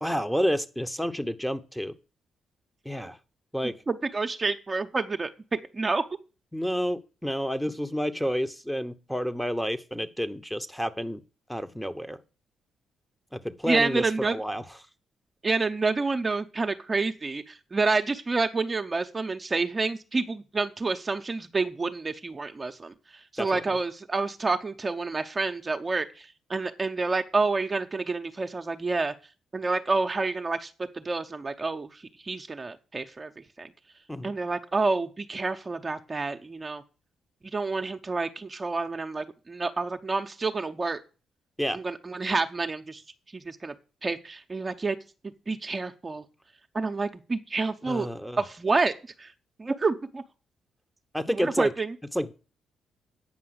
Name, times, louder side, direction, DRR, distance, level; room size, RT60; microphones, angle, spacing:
voice 1, 0.0-1.9 2.8-3.2 3.5-3.8 6.5-11.2 11.5-12.2 13.3-14.6 23.4-23.6 34.1-34.3 41.6-41.8 47.8-48.4 51.1-51.7 52.1-52.3, equal, ahead, 10 dB, 1.0 m, -30 dB
voice 2, 3.6-6.1 13.6-14.4 15.4-22.9 23.3-29.1 29.5-30.7 31.0-33.7 34.2-36.8 37.4-41.0 41.7-43.0 43.3-43.7 44.0-45.0 45.5-46.2 46.7-48.1 48.4-48.9 49.2-49.3 49.6-50.2 51.3-51.9, right 3 dB, 35° right, 6 dB, 0.9 m, -28 dB
8.8 x 5.5 x 7.9 m, 0.34 s
hypercardioid pair, 45°, 0 cm